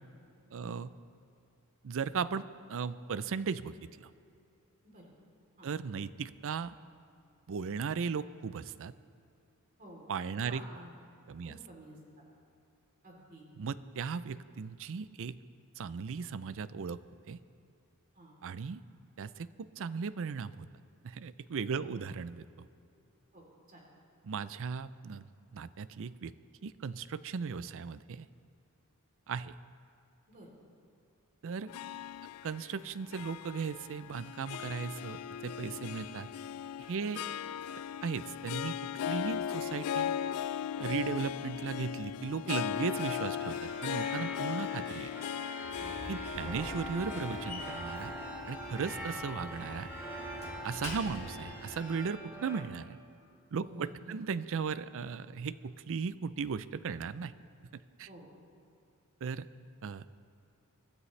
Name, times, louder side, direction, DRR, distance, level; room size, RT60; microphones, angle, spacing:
voice 1, 0.5-0.9 1.8-2.4 2.7-4.1 5.6-6.8 7.5-8.9 10.1-10.6 11.3-11.6 13.6-15.4 15.8-17.0 17.3-17.4 18.4-18.8 19.2-20.7 21.0-22.4 24.2-25.2 25.5-26.3 26.6-28.3 29.3-29.5 31.4-31.7 32.4-36.3 36.9-37.2 38.0-38.8 39.1-40.1 40.8-45.1 46.1-48.1 48.5-49.9 50.6-53.0 53.5-57.3 57.7-58.1 59.2-59.5 59.8-60.0, right 5 dB, 60° right, 16 dB, 0.4 m, -37 dB
voice 2, 10.3-10.9 11.4-12.2 13.0-13.4 18.1-18.4 21.8-22.1 23.3-23.8 30.3-30.5 37.0-37.2 45.8-46.0 49.0-49.1 50.6-50.7 53.6-54.1 58.0-58.3, right 1 dB, 40° right, -2 dB, 3.3 m, -51 dB
Harp, 31.7-50.1, left 9 dB, 75° left, 0.3 m, -38 dB
sound 1, 42.8-52.6, right 1 dB, 10° right, 3.4 m, -43 dB
Slam, 45.6-51.8, left 1 dB, 30° left, 2.2 m, -46 dB
24.5 x 12.5 x 3.2 m, 2.7 s
head